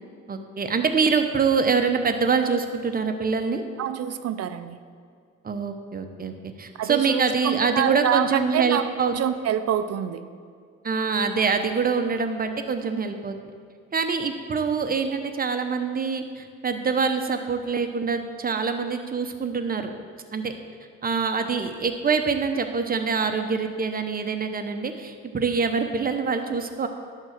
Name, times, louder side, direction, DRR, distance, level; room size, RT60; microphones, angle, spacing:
voice 1, 0.3-3.6 5.4-9.1 10.8-13.4 13.9-19.9 20.3-20.5 21.0-26.9, right 5 dB, 30° right, 6 dB, 0.8 m, -25 dB
voice 2, 3.8-4.8 6.8-10.3, right 9 dB, 55° right, 11 dB, 0.5 m, -26 dB
11.0 x 3.8 x 6.4 m, 2.3 s
cardioid pair, 90°, 30 cm